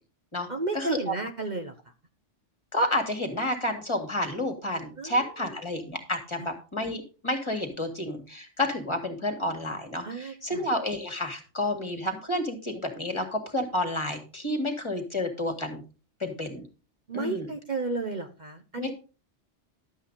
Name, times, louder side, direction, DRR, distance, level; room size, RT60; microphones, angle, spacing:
voice 1, 0.5-1.7 5.0-5.6 6.4-6.5 10.0-10.7 17.1-18.9, right 3 dB, 40° right, 4 dB, 1.1 m, -33 dB
voice 2, 2.7-15.8 16.2-16.6 17.1-17.5 18.8-18.9, left 1 dB, 25° left, 5 dB, 2.2 m, -30 dB
12.0 x 8.2 x 4.0 m, 0.33 s
omnidirectional pair, 1.2 m